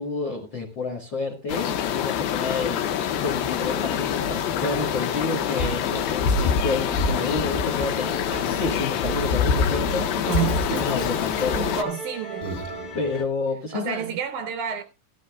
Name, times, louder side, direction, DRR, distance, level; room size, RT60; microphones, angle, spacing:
voice 1, 0.0-2.8 3.2-10.1 10.8-11.9 12.9-14.2, left 3 dB, 50° left, 1.4 m, -30 dB
sound 1, 1.5-11.8, left 7 dB, 85° left, 2.8 m, -25 dB
Musical instrument, 2.0-13.2, right 1 dB, 30° left, 2.3 m, -39 dB
voice 2, 10.3-10.9 11.6-12.5 13.7-14.8, right 8 dB, 75° right, 1.9 m, -29 dB
15.5 x 13.0 x 2.3 m
omnidirectional pair, 4.2 m